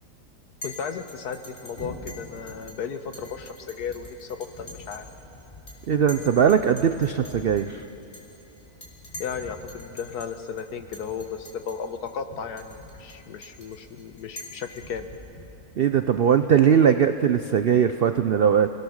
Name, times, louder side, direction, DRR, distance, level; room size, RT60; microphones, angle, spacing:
voice 1, 0.6-5.0 9.2-15.1, left 6 dB, 80° left, 9 dB, 1.6 m, -35 dB
Chink clink, 0.6-0.8 1.1-2.8 3.1-5.1 5.4-5.8 6.1-9.4 9.7-10.3 10.6-10.7 10.9-11.8 12.1-12.2 12.6-15.1, left 1 dB, 50° left, 4.0 m, -44 dB
sound 1, 1.7-15.6, left 2 dB, 30° left, 3.7 m, -47 dB
voice 2, 5.9-7.8 15.8-18.7, right 8 dB, 70° right, 9 dB, 0.5 m, -20 dB
27.0 x 18.0 x 6.5 m, 2.8 s
omnidirectional pair, 1.7 m